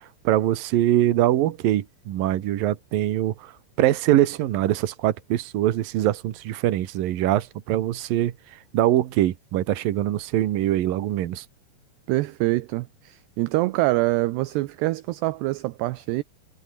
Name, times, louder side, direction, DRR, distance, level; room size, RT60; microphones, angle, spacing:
voice 1, 0.2-3.5 3.8-8.3 8.7-11.4, right 13 dB, 60° right, 2.7 m, -23 dB
voice 2, 12.1-16.2, right 19 dB, 80° right, 2.6 m, -25 dB
omnidirectional pair, 5.5 m